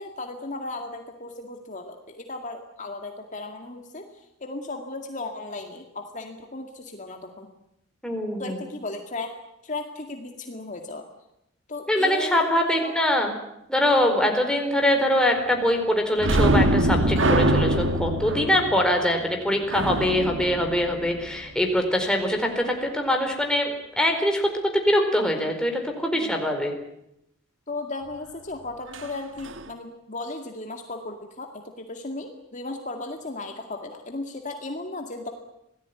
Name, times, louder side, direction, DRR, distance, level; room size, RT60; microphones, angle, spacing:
voice 1, 0.0-4.1 4.4-7.5 8.4-9.3 9.6-11.0 11.7-12.5 12.8-12.9 14.2-14.4 26.1-26.5 27.7-35.3, left 2 dB, 40° left, 4 dB, 2.2 m, -36 dB
voice 2, 8.0-8.6 11.9-13.3 13.7-26.7, left 1 dB, 5° left, 3 dB, 4.5 m, -23 dB
sound 1, 16.2-21.6 28.9-29.1 29.4-29.6, right 1 dB, 65° right, 1.7 m, -23 dB
26.5 x 18.0 x 9.7 m, 0.82 s
head